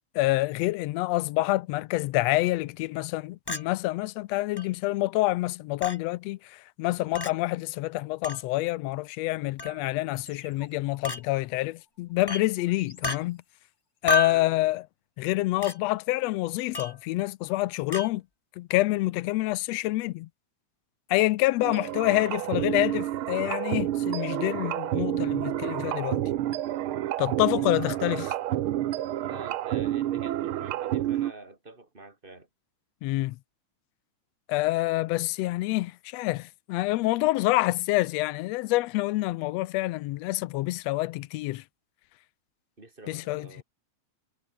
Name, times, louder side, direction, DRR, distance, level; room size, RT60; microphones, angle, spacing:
voice 1, 0.1-13.4 14.0-14.9 15.2-18.2 18.6-20.3 21.1-26.2 27.2-28.3 33.0-33.4 34.5-41.6 43.1-43.6, left 19 dB, 75° left, 1.6 m, -27 dB
Chink clink, 3.5-3.6 4.6-4.7 5.8-6.0 7.1-7.3 8.2-8.4 9.6-9.8 11.0-11.2 12.3-12.4 13.0-13.2 14.1-14.4 15.6-15.8 16.7-17.0 17.9-18.1, left 2 dB, 15° left, 0.8 m, -30 dB
sound 1, 10.2-13.8, left 3 dB, 35° left, 5.4 m, -55 dB
sound 2, 21.6-31.3, right 13 dB, 75° right, 1.2 m, -29 dB
voice 2, 22.0-22.4 29.2-32.5 42.8-43.6, right 2 dB, 15° right, 4.9 m, -47 dB
omnidirectional pair, 3.4 m